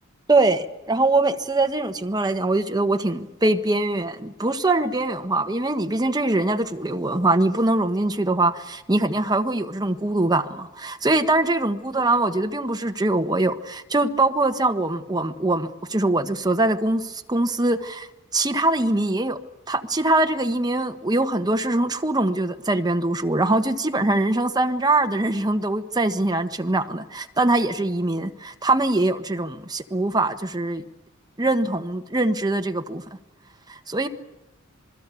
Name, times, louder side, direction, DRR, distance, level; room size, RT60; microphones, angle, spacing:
voice 1, 0.3-18.1 18.3-19.4 19.7-30.8 31.4-33.0 33.7-34.1, right 2 dB, 20° right, 1.3 m, -23 dB
27.0 x 20.5 x 8.4 m
head